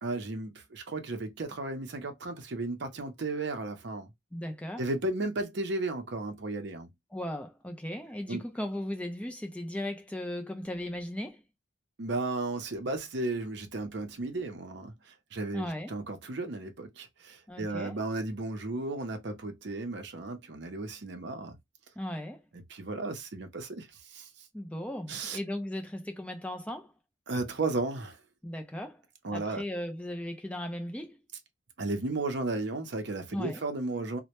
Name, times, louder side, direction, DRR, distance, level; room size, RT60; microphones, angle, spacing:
voice 1, 0.0-4.1 4.8-6.9 8.3-8.4 12.0-14.9 15.3-21.6 22.5-24.3 25.1-25.4 27.3-28.2 29.2-29.6 31.8-34.2, right 2 dB, 55° right, 0.6 m, -34 dB
voice 2, 4.3-4.8 7.1-11.4 15.5-15.9 17.5-18.0 22.0-22.4 24.5-26.9 28.4-29.0 29.3-31.2 33.3-33.6, left 1 dB, 5° left, 0.4 m, -37 dB
2.1 x 2.1 x 2.8 m
head